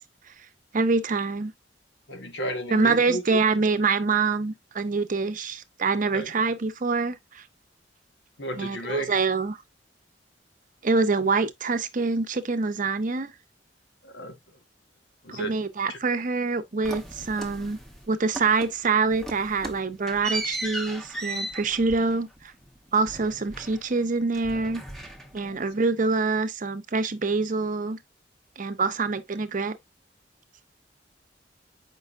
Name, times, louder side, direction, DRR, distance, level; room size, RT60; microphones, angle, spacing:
voice 1, 0.7-1.5 2.7-7.4 8.6-9.6 10.8-13.3 15.3-17.8 18.1-22.3 22.9-24.8 25.3-28.0 28.6-29.8, right 4 dB, 45° right, 0.7 m, -25 dB
voice 2, 2.1-3.2 6.1-6.3 8.4-9.2 14.0-14.4 15.2-15.5 15.9-16.0 25.4-25.6, equal, 70° left, 1.7 m, -33 dB
sound 1, 16.8-18.0 18.3-18.8 19.1-24.1 24.3-25.6, right 2 dB, ahead, 1.2 m, -37 dB
7.7 x 5.3 x 2.5 m
head